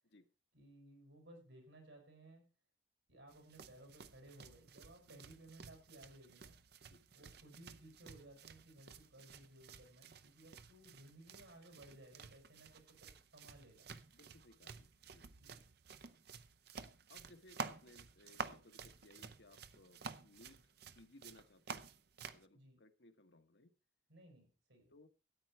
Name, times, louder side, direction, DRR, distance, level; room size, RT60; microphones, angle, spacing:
voice 1, 0.5-2.5 3.1-6.6 7.1-13.9 15.4-15.6 22.5-22.8 24.1-24.9, right 1 dB, 85° right, 3 dB, 6.2 m, -60 dB
sound 1, 3.3-22.4, right 5 dB, 60° right, 0.7 m, -52 dB
voice 2, 5.0-5.4 6.8-7.3 14.1-15.5 17.1-21.9 22.2-23.8 24.9-25.1, left 2 dB, 65° left, 7 dB, 1.3 m, -64 dB
13.5 x 9.1 x 4.4 m, 0.33 s
head